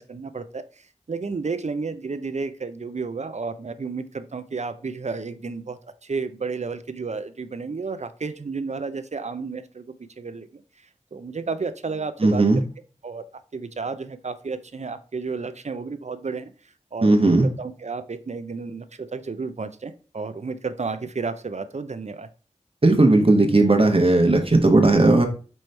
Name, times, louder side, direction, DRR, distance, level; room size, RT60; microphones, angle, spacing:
voice 1, 0.0-10.6 11.1-12.4 13.0-13.2 13.5-16.5 16.9-22.3, right 4 dB, 65° right, 11 dB, 0.5 m, -32 dB
voice 2, 12.2-12.6 17.0-17.5 22.8-25.3, right 2 dB, 50° right, 4 dB, 1.0 m, -16 dB
5.3 x 3.1 x 3.2 m, 0.38 s
wide cardioid pair, 55°, 13 cm